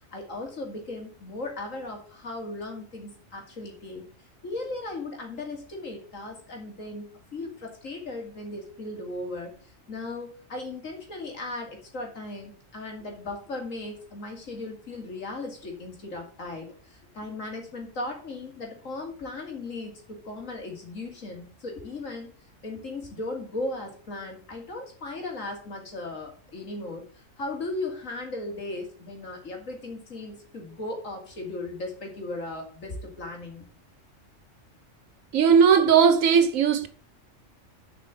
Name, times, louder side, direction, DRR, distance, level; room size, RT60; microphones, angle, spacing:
voice 1, 0.0-4.0 4.4-9.5 9.9-22.3 22.6-33.6, left 2 dB, 80° left, 2.9 m, -37 dB
voice 2, 35.3-36.9, right 7 dB, 90° right, 1.4 m, -18 dB
7.1 x 5.9 x 7.0 m
omnidirectional pair, 1.3 m